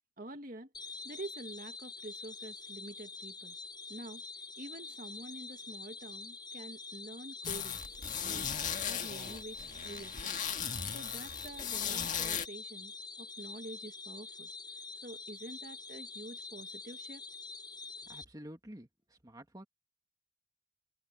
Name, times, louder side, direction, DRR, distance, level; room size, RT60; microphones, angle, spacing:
voice 1, 0.2-0.7 1.0-3.6 3.9-4.2 4.6-7.8 8.2-8.5 8.9-10.4 10.9-12.9 13.2-14.5 15.0-17.2, right 1 dB, 45° right, 2.0 m, -47 dB
sound 1, 0.7-18.2, left 4 dB, 20° left, 6.8 m, -46 dB
sound 2, 7.4-12.5, left 8 dB, 40° left, 1.9 m, -37 dB
voice 2, 17.8-19.6, equal, 20° right, 2.0 m, -50 dB
head